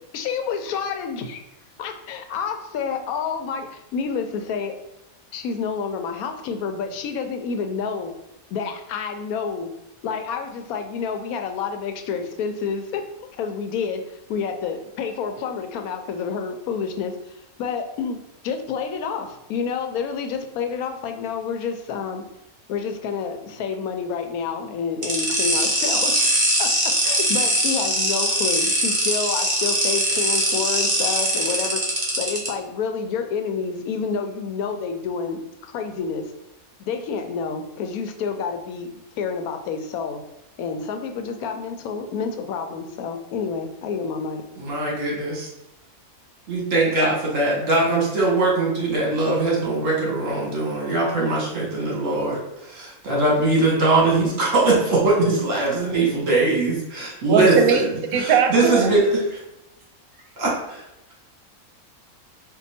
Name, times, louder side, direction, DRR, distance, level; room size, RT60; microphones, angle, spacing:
voice 1, 0.1-1.4 1.8-4.7 5.3-8.1 8.5-9.7 10.0-13.1 13.4-18.2 18.4-22.2 22.7-26.3 26.6-26.7 27.0-36.3 36.8-40.2 40.6-44.4, left 6 dB, 80° left, 6 dB, 1.1 m, -29 dB
sound 1, 25.0-32.5, right 1 dB, 25° right, 1.0 m, -21 dB
voice 2, 44.6-45.5 46.5-57.8 58.1-59.4 60.4-60.8, right 2 dB, 60° right, -4 dB, 1.6 m, -21 dB
voice 3, 57.3-57.9 58.1-59.0, right 6 dB, 85° right, 6 dB, 1.1 m, -19 dB
4.5 x 2.5 x 4.1 m, 0.89 s
omnidirectional pair, 1.5 m